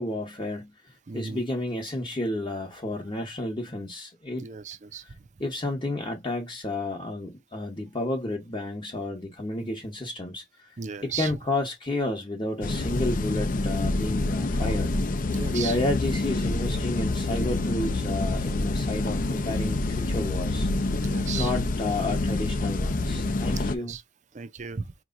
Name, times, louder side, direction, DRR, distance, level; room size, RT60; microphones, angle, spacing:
voice 1, 0.0-4.5 5.0-5.1 5.4-10.7 11.0-15.0 15.5-20.7 21.1-23.9, left 1 dB, 25° left, 0.9 m, -31 dB
voice 2, 1.1-1.4 4.4-5.0 9.6-9.7 10.8-11.3 15.3-15.8 21.0-21.5 23.7-24.0 24.3-24.9, right 6 dB, 40° right, 0.5 m, -36 dB
sound 1, 12.6-23.7, left 2 dB, 45° left, 0.6 m, -27 dB
4.6 x 3.0 x 2.5 m
head